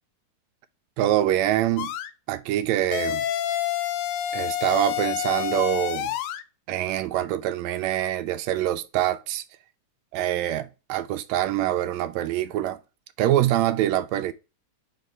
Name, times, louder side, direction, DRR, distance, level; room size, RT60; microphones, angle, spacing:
voice 1, 1.0-1.9 2.3-3.2 4.3-6.1 6.7-9.4 10.1-12.8 13.2-14.3, right 12 dB, 80° right, 1.7 m, -25 dB
sound 1, 1.8-2.1 2.9-6.4, left 11 dB, 80° left, 2.0 m, -28 dB
5.0 x 3.9 x 5.3 m
omnidirectional pair, 3.4 m